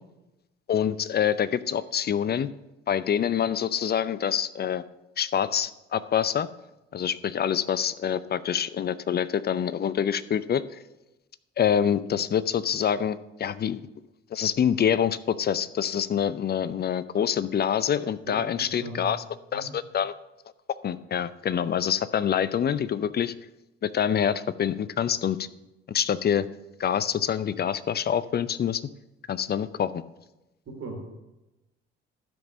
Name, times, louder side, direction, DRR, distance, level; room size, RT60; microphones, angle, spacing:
voice 1, 0.7-2.5 2.9-4.8 5.2-6.5 6.9-10.6 11.6-13.8 14.3-19.2 19.5-20.1 20.8-23.3 23.8-25.5 25.9-26.5 26.8-28.8 29.3-30.0, left 8 dB, 35° left, 16 dB, 0.6 m, -26 dB
voice 2, 18.2-19.1 19.5-19.7 30.7-31.0, right 2 dB, 45° right, 1 dB, 2.9 m, -39 dB
12.5 x 5.3 x 6.1 m, 0.98 s
hypercardioid pair, 50°, 30 cm